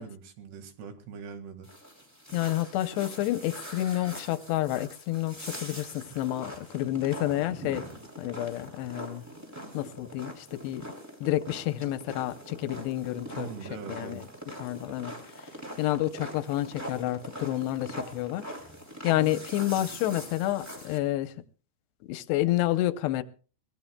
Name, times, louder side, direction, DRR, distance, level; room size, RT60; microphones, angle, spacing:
voice 1, 0.0-1.7 13.3-14.2, right 6 dB, 85° right, 4.0 m, -42 dB
sound 1, 1.6-21.0, equal, 5° right, 2.1 m, -43 dB
voice 2, 2.3-7.9 8.2-9.2 9.7-10.8 11.2-13.5 13.9-14.2 14.6-15.1 15.8-18.5 19.0-21.3 22.1-23.2, left 14 dB, 85° left, 2.9 m, -29 dB
23.0 x 18.0 x 2.3 m
omnidirectional pair, 4.7 m